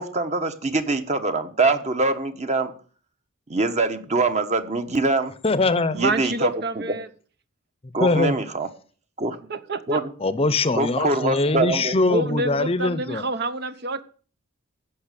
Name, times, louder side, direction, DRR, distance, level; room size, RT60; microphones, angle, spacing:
voice 1, 0.0-2.7 3.5-5.3 5.9-6.8 7.9-8.7 9.2-9.4 9.9-10.1 10.7-12.2, right 3 dB, 35° right, 8 dB, 1.4 m, -24 dB
voice 2, 5.4-6.0 8.0-8.4 10.2-13.3, left 2 dB, 30° left, 15 dB, 0.8 m, -22 dB
voice 3, 5.9-7.1 9.5-10.0 12.1-14.0, right 2 dB, 50° right, 11 dB, 1.0 m, -27 dB
15.5 x 6.2 x 8.5 m, 0.43 s
head